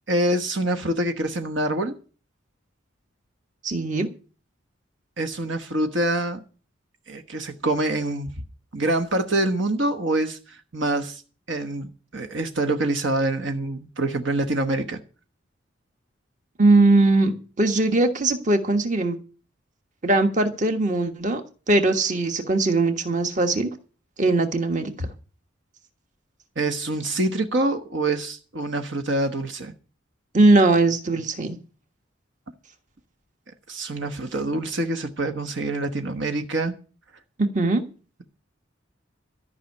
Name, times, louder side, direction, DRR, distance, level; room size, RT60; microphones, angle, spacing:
voice 1, 0.1-1.9 5.2-6.4 7.1-8.4 8.7-11.2 11.5-15.0 25.0-25.1 26.6-29.7 33.7-36.7, right 2 dB, 70° right, 7 dB, 1.2 m, -25 dB
voice 2, 3.6-4.1 16.6-19.2 20.0-21.4 21.7-23.7 24.2-24.9 30.3-31.6 37.4-37.8, right 2 dB, 40° right, 7 dB, 1.5 m, -20 dB
13.5 x 5.7 x 9.5 m, 0.37 s
head